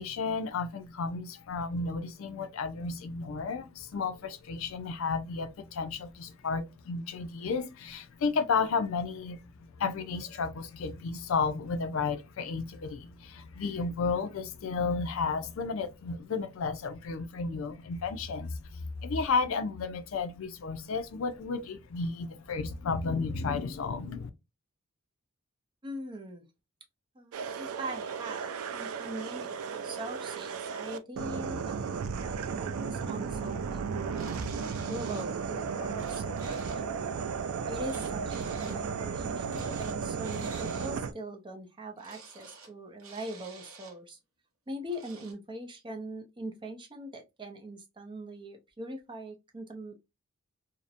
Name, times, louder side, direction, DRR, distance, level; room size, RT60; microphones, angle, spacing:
voice 1, 0.0-24.3, left 4 dB, 70° left, 0.4 m, -33 dB
voice 2, 25.8-26.5 27.1-34.0 34.5-36.7 37.7-44.2 44.7-49.9, right 1 dB, 20° right, 0.5 m, -42 dB
sound 1, 27.3-41.1, right 6 dB, 90° right, 0.3 m, -35 dB
sound 2, 34.1-35.3 35.7-36.8 37.8-38.8 39.4-41.0 42.0-42.7 43.0-43.9 44.9-45.3, right 3 dB, 70° right, 0.8 m, -49 dB
2.7 x 2.1 x 2.3 m
head